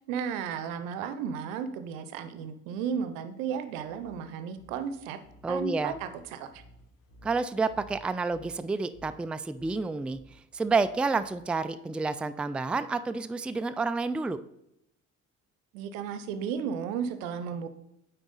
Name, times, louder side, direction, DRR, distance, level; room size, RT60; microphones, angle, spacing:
voice 1, 0.0-5.2 5.5-6.6 15.7-17.7, right 7 dB, 80° right, 11 dB, 0.7 m, -34 dB
sound 1, 3.7-11.7, equal, 70° left, 1.6 m, -56 dB
voice 2, 5.4-5.9 7.2-14.4, right 4 dB, 5° right, 12 dB, 0.3 m, -29 dB
9.1 x 4.1 x 4.0 m, 0.79 s
hypercardioid pair, 50°, 39 cm